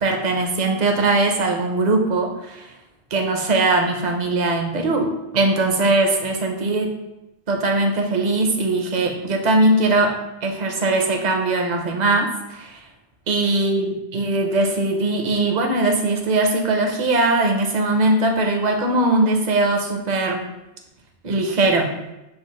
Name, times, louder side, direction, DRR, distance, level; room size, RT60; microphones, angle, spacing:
voice 1, 0.0-2.7 3.1-6.9 7.5-10.1 10.4-12.8 13.3-20.4 21.2-21.9, right 2 dB, 50° right, 3 dB, 0.7 m, -20 dB
6.6 x 2.5 x 3.1 m, 0.95 s
omnidirectional pair, 1.1 m